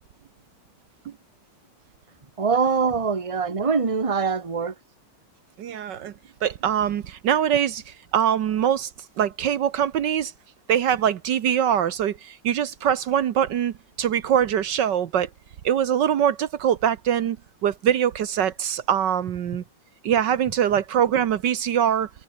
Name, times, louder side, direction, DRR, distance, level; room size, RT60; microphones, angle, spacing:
voice 1, 2.4-4.7, right 5 dB, 20° right, 1.4 m, -23 dB
voice 2, 5.6-6.1 6.4-8.9 9.2-10.3 10.7-15.3 15.6-17.4 17.6-19.6 20.0-22.1, right 9 dB, 70° right, 1.6 m, -23 dB
omnidirectional pair, 2.0 m